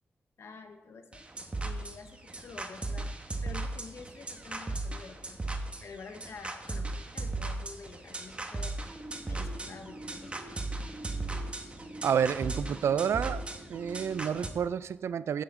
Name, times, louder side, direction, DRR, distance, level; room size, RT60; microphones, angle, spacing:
voice 1, 0.4-1.2 1.6-3.1 3.4-5.4 5.8-10.4, left 4 dB, 80° left, 6 dB, 1.1 m, -48 dB
sound 1, 1.1-14.5, right 2 dB, 25° right, 1.2 m, -37 dB
voice 2, 12.0-13.4 13.7-15.4, right 8 dB, 85° right, 16 dB, 0.4 m, -29 dB
8.6 x 6.3 x 7.3 m, 1.1 s
wide cardioid pair, 105°, 4 cm